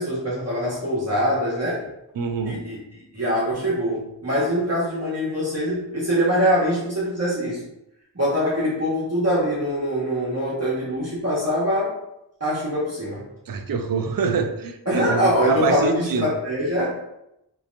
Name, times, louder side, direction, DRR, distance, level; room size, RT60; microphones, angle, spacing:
voice 1, 0.0-1.9 2.4-7.6 8.1-11.9 12.4-13.2 14.9-17.1, equal, 35° right, -8 dB, 1.3 m, -23 dB
voice 2, 2.2-2.6 13.5-16.3, right 5 dB, 55° right, 6 dB, 0.5 m, -25 dB
3.3 x 3.0 x 2.5 m, 0.83 s
wide cardioid pair, 40°, 43 cm